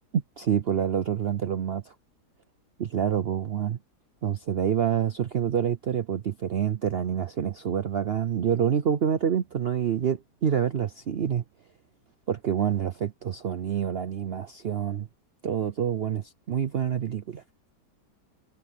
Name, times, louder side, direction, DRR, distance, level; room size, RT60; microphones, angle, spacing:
voice 1, 0.1-1.9 2.8-3.8 4.2-11.4 12.3-15.1 15.4-17.4, right 8 dB, 65° right, 0.6 m, -27 dB
omnidirectional pair, 1.8 m